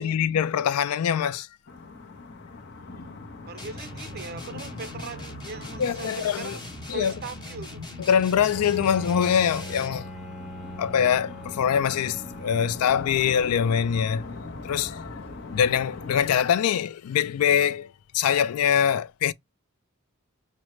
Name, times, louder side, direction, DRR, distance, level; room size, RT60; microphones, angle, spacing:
voice 1, 0.0-1.5 5.8-6.6 6.9-7.1 8.0-10.1 10.8-14.2 14.6-15.1 15.5-19.3, left 8 dB, 85° left, 0.3 m, -24 dB
sound 1, 1.7-16.4, left 3 dB, 50° left, 0.8 m, -42 dB
voice 2, 3.5-7.9, right 4 dB, 45° right, 0.4 m, -39 dB
sound 2, 3.6-10.1, left 1 dB, 20° left, 0.9 m, -40 dB
Bowed string instrument, 8.5-13.5, right 1 dB, ahead, 1.0 m, -40 dB
6.2 x 2.1 x 3.0 m
head